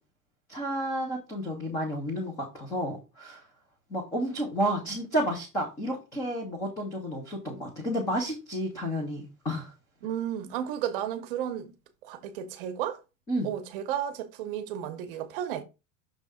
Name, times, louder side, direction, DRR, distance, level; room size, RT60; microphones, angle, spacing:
voice 1, 0.5-3.4 3.9-9.7 13.3-13.5, equal, 10° left, 0.4 m, -31 dB
voice 2, 10.0-11.7 12.0-13.0 13.4-15.6, right 10 dB, 40° right, 0.8 m, -33 dB
6.4 x 3.3 x 4.8 m
supercardioid pair, 175°, 41 cm